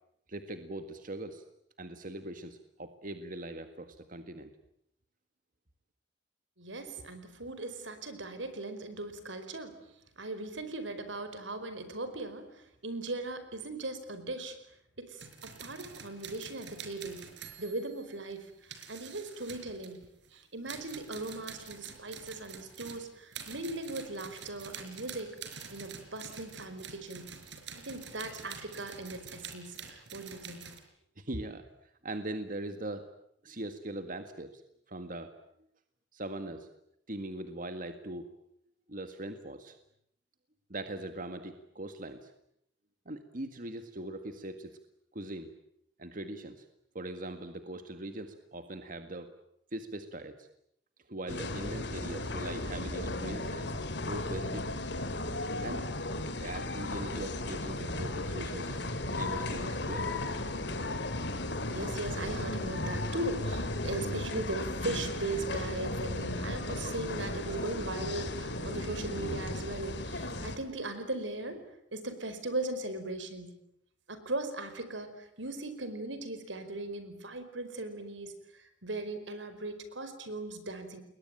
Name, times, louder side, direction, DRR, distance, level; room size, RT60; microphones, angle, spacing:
voice 1, 0.3-1.4 1.8-4.5 31.2-31.7 32.0-33.1 33.4-34.6 34.9-35.3 36.1-36.7 37.1-38.3 38.9-39.8 40.7-42.3 43.1-44.8 45.1-45.5 46.0-46.7 46.9-49.3 49.7-50.5 51.1-53.7 54.1-54.9 55.6-55.9 56.4-58.8 59.1-60.4, right 1 dB, 45° right, 8 dB, 1.9 m, -41 dB
voice 2, 6.6-9.7 10.2-14.6 15.0-17.2 17.6-20.0 20.3-25.3 25.7-27.3 27.7-30.7 61.7-71.6 71.9-73.5 74.1-81.0, right 2 dB, 85° right, 10 dB, 4.9 m, -38 dB
sound 1, 15.2-20.3 20.7-30.8, right 6 dB, 70° right, 4.8 m, -47 dB
sound 2, 51.3-70.6, left 2 dB, 65° left, 2.8 m, -35 dB
30.0 x 22.0 x 9.0 m, 0.75 s
head